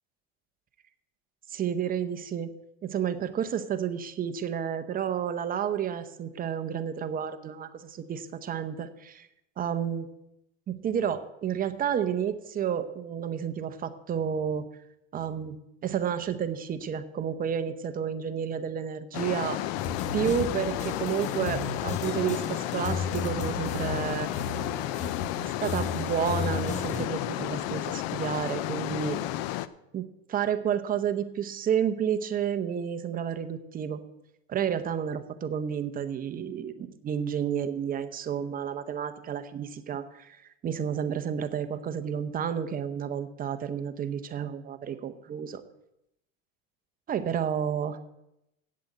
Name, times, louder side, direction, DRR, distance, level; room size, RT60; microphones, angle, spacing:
voice 1, 1.5-9.3 9.6-10.1 10.7-14.7 15.1-15.6 15.8-19.6 20.1-24.3 25.4-29.2 29.9-34.0 34.5-45.6 47.1-47.9, right 8 dB, 30° right, 10 dB, 0.8 m, -31 dB
sound 1, 19.1-29.7, left 15 dB, 70° left, 0.6 m, -32 dB
sound 2, 19.8-27.1, left 5 dB, 25° left, 0.9 m, -35 dB
8.6 x 7.7 x 7.8 m, 0.86 s
supercardioid pair, 130°, 31 cm